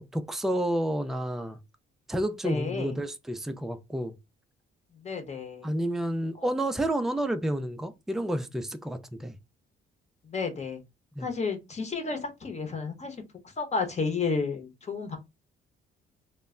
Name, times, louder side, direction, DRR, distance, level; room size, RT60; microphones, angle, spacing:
voice 1, 0.0-1.6 2.1-4.1 5.6-9.4 11.2-11.3, right 1 dB, ahead, 0.4 m, -30 dB
voice 2, 2.4-3.0 5.0-5.7 6.4-6.5 10.2-10.8 11.2-13.2 13.6-15.2, left 4 dB, 35° left, 0.8 m, -32 dB
2.1 x 2.1 x 3.6 m
cardioid pair, 90°, 20 cm